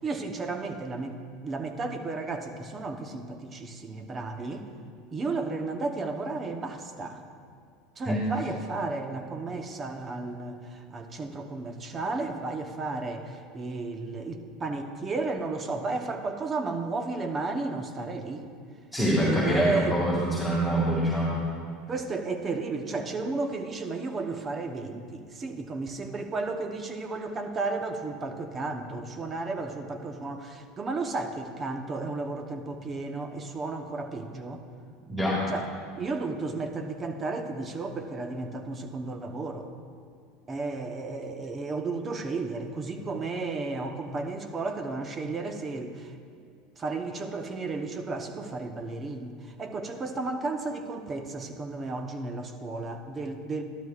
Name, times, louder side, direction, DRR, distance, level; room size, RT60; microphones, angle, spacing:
voice 1, 0.0-1.2 1.4-4.7 5.1-7.2 8.0-18.4 19.3-20.0 21.9-34.6 35.5-35.7 36.0-39.7 40.5-46.1 46.8-53.6, right 3 dB, 30° right, 6 dB, 1.0 m, -33 dB
voice 2, 18.9-21.4 35.1-35.5, equal, ahead, -7 dB, 2.1 m, -25 dB
12.5 x 12.0 x 2.5 m, 2.3 s
hypercardioid pair, 90°, 0 cm